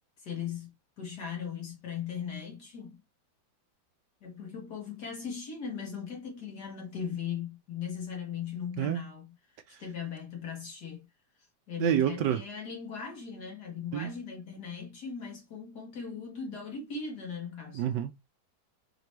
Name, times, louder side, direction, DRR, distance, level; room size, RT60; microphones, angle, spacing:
voice 1, 0.2-3.0 4.2-9.3 9.8-11.1 11.7-17.9, left 7 dB, 55° left, 2.2 m, -38 dB
voice 2, 11.8-12.4 13.9-14.1 17.7-18.2, right 11 dB, 75° right, 1.1 m, -28 dB
5.0 x 3.0 x 3.2 m
omnidirectional pair, 2.1 m